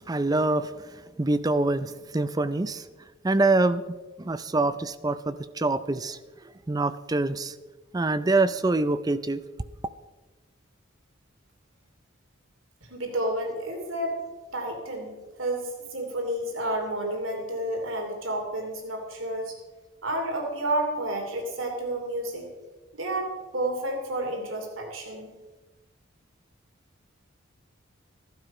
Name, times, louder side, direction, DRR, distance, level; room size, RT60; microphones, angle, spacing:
voice 1, 0.1-2.9 3.2-6.2 6.7-7.6 7.9-9.4, right 2 dB, 20° right, 0.4 m, -25 dB
voice 2, 12.9-14.2 14.5-19.6 20.0-22.5 22.9-25.3, right 1 dB, 80° right, 2.8 m, -30 dB
15.0 x 12.0 x 5.4 m
head